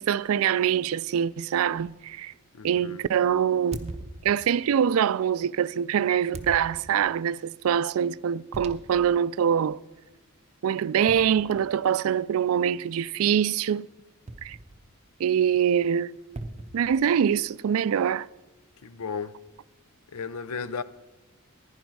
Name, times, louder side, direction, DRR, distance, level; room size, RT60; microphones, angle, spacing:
voice 1, 0.0-2.3 2.6-3.9 4.2-9.8 10.6-13.9 14.4-14.6 15.2-16.2 16.7-18.3, right 8 dB, 70° right, 0.3 m, -24 dB
voice 2, 2.5-3.0 18.8-19.3 20.1-20.8, left 5 dB, 85° left, 0.6 m, -34 dB
sound 1, 3.7-4.7 6.3-7.2 8.5-9.2 9.6-9.7 11.1-12.0 14.3-15.1 16.4-17.5, right 2 dB, 30° right, 0.7 m, -41 dB
15.0 x 10.5 x 4.7 m
head